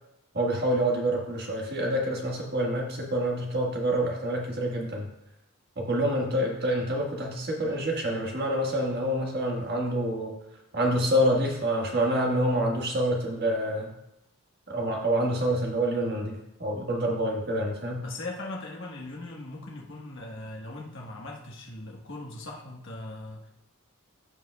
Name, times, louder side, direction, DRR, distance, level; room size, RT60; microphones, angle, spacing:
voice 1, 0.3-5.1 5.8-10.3 10.7-13.9 14.7-18.0, right 1 dB, 45° right, -1 dB, 1.5 m, -27 dB
voice 2, 5.9-6.2 17.2-17.3 18.0-23.5, left 2 dB, 55° left, -2 dB, 1.3 m, -40 dB
15.0 x 5.1 x 2.3 m, 0.86 s
head